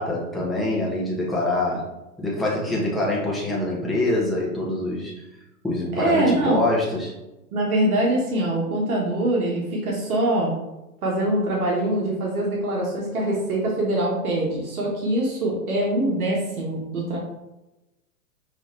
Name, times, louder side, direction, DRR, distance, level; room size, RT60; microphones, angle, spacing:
voice 1, 0.0-1.9 2.2-5.1 5.6-7.2, left 1 dB, ahead, -6 dB, 0.4 m, -25 dB
voice 2, 6.0-6.6 7.5-10.5 11.0-17.2, right 1 dB, 75° right, -3 dB, 1.4 m, -23 dB
5.4 x 2.5 x 3.2 m, 0.97 s
hypercardioid pair, 120°, 44 cm